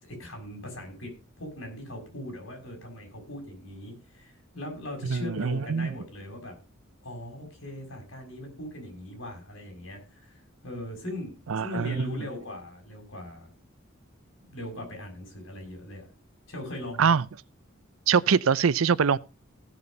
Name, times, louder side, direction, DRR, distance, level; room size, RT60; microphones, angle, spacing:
voice 1, 0.0-6.6 7.0-13.5 14.4-16.1 16.5-17.2, left 1 dB, 65° left, 6.2 m, -40 dB
voice 2, 5.1-5.9 11.5-12.2 17.0-17.2 18.1-19.2, right 6 dB, 80° right, 0.5 m, -23 dB
16.0 x 6.9 x 5.2 m
head